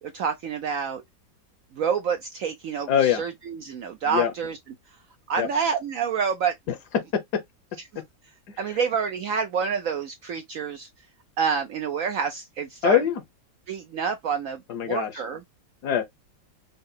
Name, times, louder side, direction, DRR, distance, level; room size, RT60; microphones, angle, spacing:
voice 1, 0.0-1.0 1.7-4.6 5.3-6.5 7.9-8.0 8.6-10.9 11.4-13.0 13.7-15.4, right 6 dB, 70° right, 0.8 m, -28 dB
voice 2, 2.9-3.2 4.1-4.3 5.4-5.5 6.7-7.4 8.6-8.7 12.8-13.2 14.7-15.1 15.8-16.0, left 9 dB, 65° left, 1.4 m, -23 dB
5.6 x 2.0 x 3.8 m
omnidirectional pair, 1.9 m